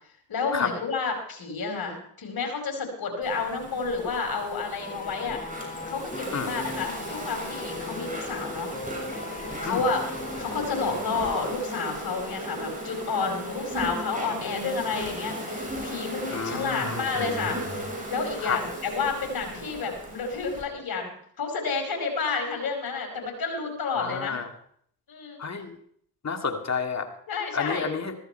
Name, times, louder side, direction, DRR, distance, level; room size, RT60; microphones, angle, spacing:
voice 1, 0.3-5.4 5.9-8.7 9.6-10.0 10.4-17.6 18.1-24.4 25.1-25.4 27.3-27.9, left 4 dB, 50° left, 3 dB, 4.7 m, -30 dB
Insect, 3.2-20.6, right 1 dB, 15° right, 6.8 m, -36 dB
sound 1, 4.8-11.5 11.8-11.9, left 3 dB, 15° left, 1.3 m, -38 dB
voice 2, 16.3-17.0 18.4-18.6 24.0-24.5 25.4-25.8 26.2-27.1 27.5-28.1, left 6 dB, 35° left, 5 dB, 2.3 m, -30 dB
14.5 x 14.0 x 4.5 m, 0.65 s
supercardioid pair, 50°, 45 cm